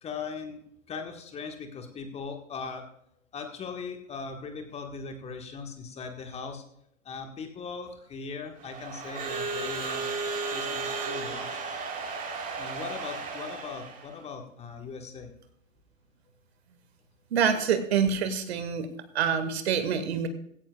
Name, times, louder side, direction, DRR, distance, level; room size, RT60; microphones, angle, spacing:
voice 1, 0.0-0.6 0.9-2.9 3.3-6.6 7.0-11.6 12.6-15.3, left 5 dB, 15° left, 5 dB, 1.4 m, -39 dB
Crowd / Alarm, 8.6-14.1, right 4 dB, 20° right, 3.3 m, -34 dB
voice 2, 17.3-20.3, right 7 dB, 55° right, 9 dB, 1.8 m, -26 dB
16.5 x 16.0 x 2.3 m, 0.72 s
figure-of-eight pair, 110°, 39 cm